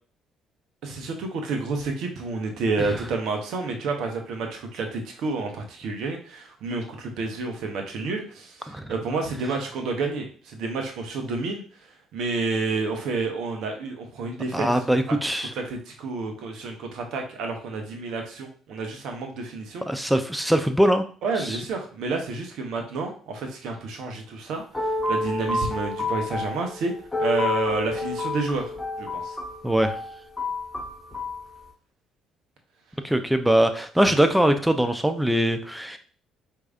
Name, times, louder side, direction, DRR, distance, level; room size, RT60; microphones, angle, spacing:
voice 1, 0.8-11.6 12.1-14.7 15.1-15.2 15.6-19.8 21.2-26.9 27.2-28.7 29.0-29.4, right 3 dB, 70° right, 3 dB, 0.8 m, -30 dB
voice 2, 14.5-15.5 19.9-21.0 21.4-21.6 29.6-30.0 33.0-36.0, right 1 dB, 5° right, 8 dB, 0.6 m, -22 dB
sound 1, 24.5-31.4, left 2 dB, 15° left, 1.3 m, -29 dB
4.6 x 2.7 x 2.4 m, 0.42 s
hypercardioid pair, 60°, 0 cm